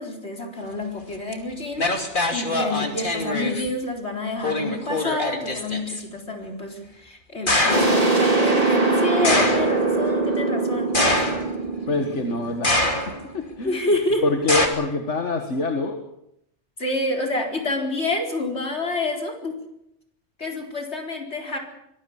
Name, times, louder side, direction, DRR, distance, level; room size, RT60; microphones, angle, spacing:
voice 1, 0.0-11.4 13.6-14.2 16.8-19.6 20.4-21.6, left 2 dB, 70° left, 2 dB, 4.5 m, -28 dB
sound 1, 1.3-1.4 1.8-3.7 4.4-6.0 7.5-8.0 9.2-9.8 10.9-11.7 12.6-13.3 14.5-14.7, left 2 dB, 45° left, 2.8 m, -23 dB
sound 2, 7.7-13.2, right 3 dB, 30° right, 4.1 m, -22 dB
voice 2, 11.9-12.9 13.3-13.8 14.2-16.0, left 3 dB, 85° left, 4 dB, 2.1 m, -25 dB
24.5 x 19.0 x 7.3 m, 0.78 s
omnidirectional pair, 1.2 m